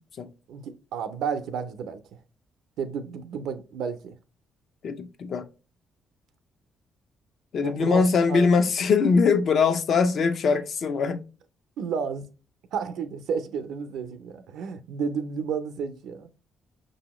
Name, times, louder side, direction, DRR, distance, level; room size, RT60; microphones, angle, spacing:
voice 1, 0.5-2.0 2.8-4.2 7.6-8.5 11.8-12.3 12.7-16.3, right 6 dB, 80° right, 0.5 m, -32 dB
voice 2, 4.8-5.5 7.5-11.2, left 5 dB, 60° left, 0.5 m, -22 dB
5.4 x 2.7 x 2.9 m
cardioid pair, 90°, 0 cm